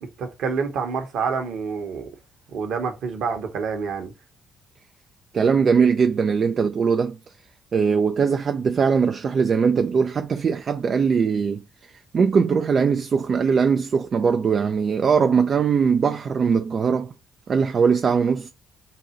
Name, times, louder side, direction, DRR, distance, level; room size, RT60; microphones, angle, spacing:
voice 1, 0.2-2.1 2.5-4.1, right 5 dB, 60° right, 1.0 m, -27 dB
voice 2, 5.3-7.2 7.7-11.6 12.1-17.1 17.5-18.5, right 6 dB, 45° right, 0.3 m, -20 dB
4.0 x 2.7 x 4.1 m
figure-of-eight pair, 45°, 0 cm